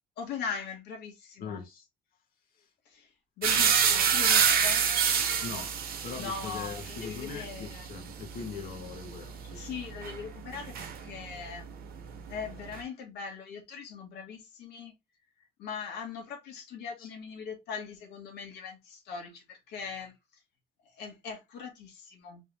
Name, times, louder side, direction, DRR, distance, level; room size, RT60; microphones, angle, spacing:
voice 1, 0.2-1.6 2.8-3.1 3.4-4.8 6.1-7.9 9.5-11.7 12.3-14.9 15.6-20.1 20.8-22.4, left 6 dB, 80° left, 1.7 m, -40 dB
voice 2, 1.4-1.9 2.6-2.7 5.4-5.7 6.0-9.7 17.0-17.1, left 6 dB, 60° left, 1.2 m, -41 dB
sound 1, 3.4-11.4 11.7-12.8, right 7 dB, 65° right, 0.9 m, -28 dB
3.4 x 2.7 x 3.3 m
cardioid pair, 110°, 17 cm